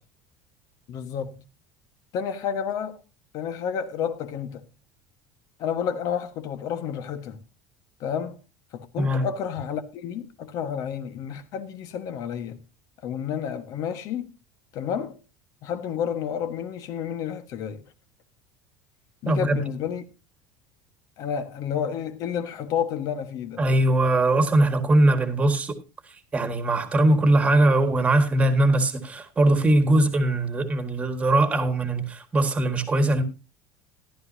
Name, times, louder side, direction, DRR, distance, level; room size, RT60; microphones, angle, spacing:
voice 1, 0.9-1.4 2.1-3.0 3.3-4.6 5.6-7.4 8.0-8.4 8.7-12.6 13.0-14.3 14.7-15.2 15.6-17.8 19.2-20.0 21.2-23.7, left 8 dB, 55° left, 1.4 m, -30 dB
voice 2, 19.3-19.6 23.6-25.7 26.3-33.2, right 1 dB, 15° right, 1.7 m, -21 dB
14.5 x 11.5 x 2.8 m
cardioid pair, 135°, 7 cm